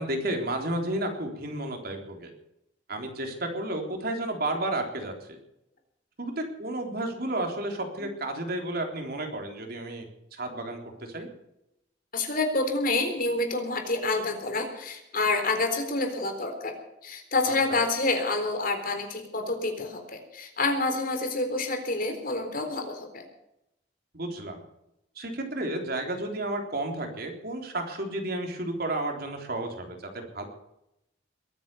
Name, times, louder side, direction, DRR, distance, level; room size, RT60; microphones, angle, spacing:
voice 1, 0.0-2.3 2.9-5.4 6.2-10.1 10.3-11.3 17.5-17.8 24.1-24.6 25.2-30.4, right 1 dB, 55° right, 3 dB, 3.7 m, -32 dB
voice 2, 12.1-16.8 17.0-23.2, left 2 dB, 50° left, 5 dB, 3.9 m, -28 dB
22.0 x 9.4 x 7.0 m, 0.83 s
head